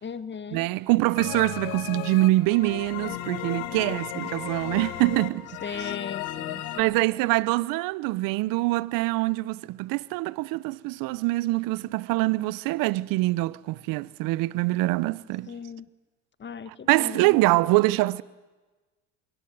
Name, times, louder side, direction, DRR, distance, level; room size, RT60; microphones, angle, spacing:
voice 1, 0.0-0.7 5.6-7.0 15.5-15.9 16.4-17.2, left 6 dB, 30° left, 1.7 m, -37 dB
voice 2, 0.5-5.6 6.8-15.5 16.9-18.2, right 20 dB, 65° right, 1.0 m, -24 dB
sound 1, 1.2-6.8, left 14 dB, 75° left, 2.1 m, -35 dB
25.5 x 22.5 x 9.4 m
supercardioid pair, 85°, 36 cm